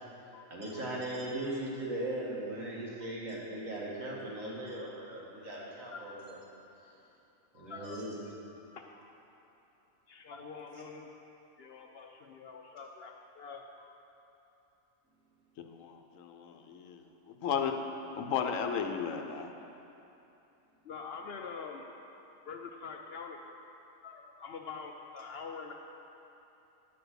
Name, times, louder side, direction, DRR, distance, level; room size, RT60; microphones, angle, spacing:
voice 1, 0.5-6.4 7.5-8.2 10.7-10.8, right 1 dB, 75° right, -5 dB, 2.0 m, -38 dB
voice 2, 7.5-8.0 8.7-9.1 10.1-11.1 11.6-14.0 20.8-22.0 22.5-23.4 24.0-25.7, left 5 dB, 65° left, 3 dB, 0.7 m, -45 dB
voice 3, 15.6-17.7 18.1-19.5, left 7 dB, 80° left, 6 dB, 1.0 m, -35 dB
10.0 x 4.9 x 6.3 m, 2.9 s
omnidirectional pair, 1.4 m